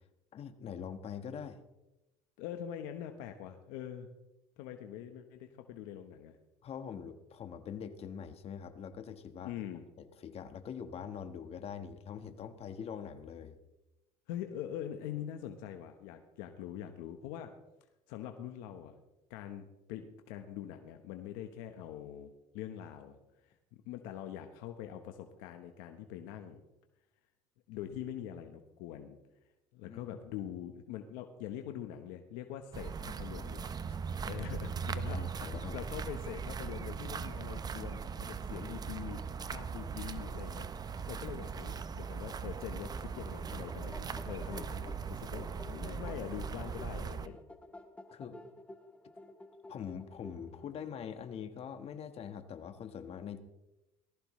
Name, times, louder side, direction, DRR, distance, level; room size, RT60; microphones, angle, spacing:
voice 1, 0.3-1.6 6.6-9.5 10.0-13.6 29.9-30.0 35.1-35.8 48.1-48.4 49.7-53.4, left 7 dB, 45° left, 8 dB, 1.5 m, -43 dB
voice 2, 2.4-4.1 4.6-6.4 9.4-9.8 14.3-17.5 18.1-19.0 19.3-23.2 23.8-26.6 27.7-29.2 29.7-33.7 34.2-40.7 41.1-47.4, left 10 dB, 85° left, 6 dB, 1.2 m, -44 dB
sound 1, 32.7-47.3, right 6 dB, 30° right, 0.7 m, -39 dB
sound 2, 43.4-50.8, left 1 dB, 10° left, 1.2 m, -52 dB
18.5 x 15.0 x 3.2 m, 0.96 s
cardioid pair, 115°, 14 cm